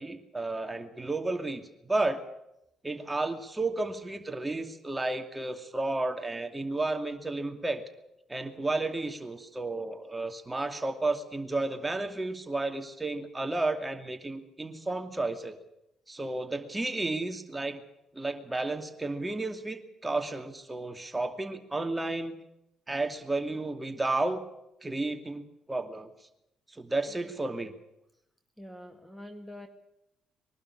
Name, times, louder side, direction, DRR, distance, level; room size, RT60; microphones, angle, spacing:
voice 1, 0.0-2.2 2.8-7.8 8.3-15.6 16.1-17.8 18.1-22.3 22.9-24.4 24.8-26.1 26.7-27.7, right 2 dB, 15° right, 6 dB, 2.5 m, -32 dB
voice 2, 28.6-29.7, left 1 dB, 5° left, 6 dB, 2.0 m, -46 dB
22.5 x 12.0 x 9.9 m, 0.86 s
hypercardioid pair, 55°, 0 cm